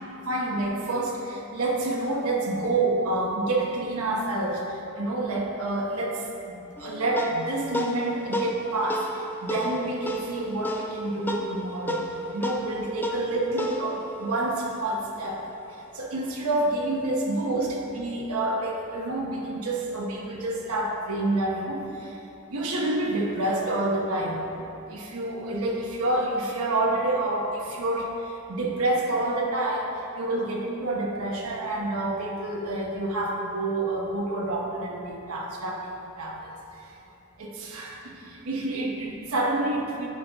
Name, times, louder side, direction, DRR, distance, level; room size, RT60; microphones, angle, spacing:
voice 1, 0.3-6.2 6.5-9.1 9.4-12.0 12.3-15.4 15.9-22.1 22.5-28.1 28.5-35.9 36.2-36.4 37.4-40.1, right 2 dB, 75° right, -2 dB, 1.0 m, -28 dB
sound 1, 6.8-15.5, equal, 10° left, 0.4 m, -33 dB
9.5 x 5.4 x 3.5 m, 2.8 s
head